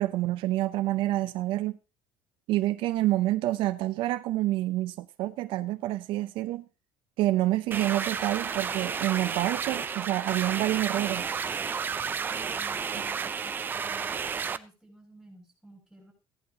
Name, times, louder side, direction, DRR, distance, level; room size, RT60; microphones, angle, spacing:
voice 1, 0.0-1.8 2.5-6.6 7.2-11.3, right 16 dB, 70° right, 0.6 m, -28 dB
sound 1, 7.7-14.6, right 6 dB, 20° right, 0.5 m, -32 dB
voice 2, 12.2-16.1, right 1 dB, ahead, 7.8 m, -54 dB
16.0 x 11.5 x 2.9 m
cardioid pair, 165°, 9 cm